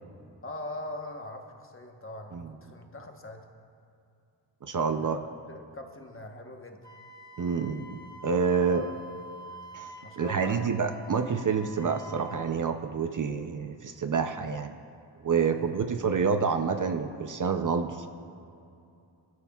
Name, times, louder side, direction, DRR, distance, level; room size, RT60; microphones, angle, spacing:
voice 1, 0.4-3.4 4.9-5.2 5.5-6.8 8.7-9.0 10.0-10.7 15.4-15.8, left 2 dB, 30° left, 3 dB, 1.1 m, -42 dB
voice 2, 4.6-5.2 7.4-8.8 9.7-14.7 15.2-18.1, right 5 dB, 45° right, 7 dB, 0.6 m, -28 dB
Wind instrument woodwind instrument, 6.8-12.5, right 2 dB, 10° left, 0.8 m, -46 dB
26.0 x 12.5 x 2.4 m, 2.6 s
wide cardioid pair, 165°, 44 cm